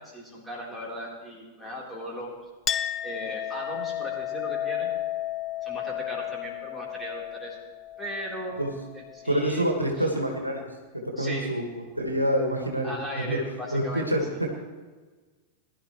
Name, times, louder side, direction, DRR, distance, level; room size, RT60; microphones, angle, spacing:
voice 1, 0.0-2.3 3.0-4.9 5.6-7.6 8.0-8.7 8.9-9.7 10.0-10.1 11.2-11.6 12.8-14.4, equal, 5° left, -4 dB, 3.9 m, -37 dB
Chink clink, 2.7-9.7, left 12 dB, 25° left, 0.4 m, -33 dB
voice 2, 9.3-10.7 10.9-11.6 12.0-12.9 13.3-13.4 13.7-14.5, right 1 dB, 85° right, 1 dB, 1.9 m, -26 dB
20.0 x 11.5 x 3.2 m, 1.3 s
figure-of-eight pair, 90°, 0 cm